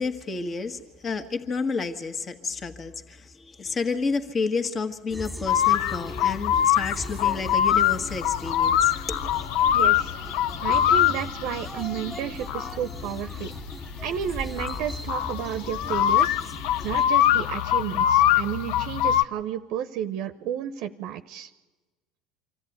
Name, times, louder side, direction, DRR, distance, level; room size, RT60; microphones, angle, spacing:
voice 1, 0.0-9.3, left 4 dB, 30° left, 7 dB, 1.7 m, -30 dB
sound 1, 5.1-17.1, equal, 5° left, 2.0 m, -39 dB
sound 2, 5.5-19.2, left 11 dB, 70° left, 0.6 m, -24 dB
voice 2, 9.7-10.1 10.6-13.5 14.0-16.3 16.8-21.5, right 10 dB, 65° right, 11 dB, 0.8 m, -32 dB
25.0 x 13.5 x 9.5 m, 1.2 s
hypercardioid pair, 85°, 0 cm